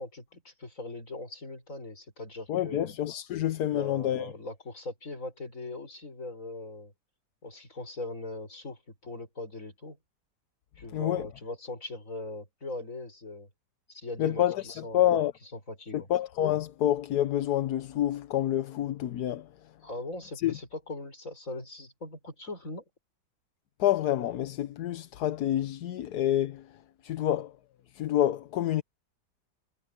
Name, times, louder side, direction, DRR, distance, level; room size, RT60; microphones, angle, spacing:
voice 1, 0.0-2.9 3.7-6.9 7.4-10.0 10.8-13.5 13.9-15.2 15.7-16.1 19.8-22.8, left 2 dB, 45° left, 6.3 m, -40 dB
voice 2, 2.5-4.3 10.9-11.2 14.2-15.3 15.9-19.5 20.4-20.6 23.8-26.7 27.0-27.5 27.9-28.8, left 12 dB, 65° left, 1.3 m, -28 dB
omnidirectional pair, 1.9 m